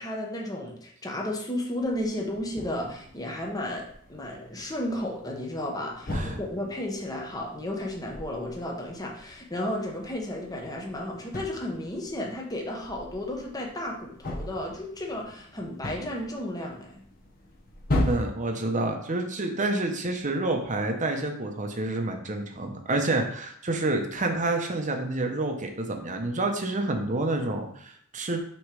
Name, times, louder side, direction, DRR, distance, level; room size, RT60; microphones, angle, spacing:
voice 1, 0.0-17.0, left 1 dB, 20° left, 0 dB, 1.0 m, -33 dB
sound 1, 1.8-18.2, left 1 dB, 45° left, 1.1 m, -37 dB
voice 2, 18.0-28.4, right 2 dB, 35° right, 4 dB, 0.8 m, -28 dB
6.3 x 3.2 x 4.8 m, 0.65 s
head